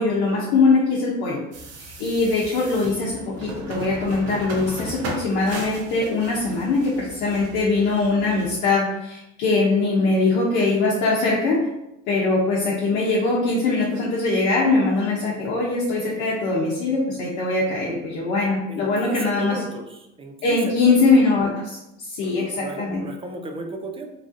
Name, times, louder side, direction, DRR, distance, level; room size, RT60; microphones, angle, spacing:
voice 1, 0.0-1.4 2.0-11.7 12.1-19.6 20.4-21.8 22.1-23.0, left 3 dB, 75° left, -5 dB, 0.7 m, -21 dB
sound 1, 1.5-8.7, right 1 dB, 50° right, 0.7 m, -37 dB
voice 2, 18.7-21.0 22.2-24.1, right 3 dB, 20° right, 4 dB, 0.4 m, -34 dB
3.1 x 2.4 x 2.5 m, 0.88 s
supercardioid pair, 90°, 32 cm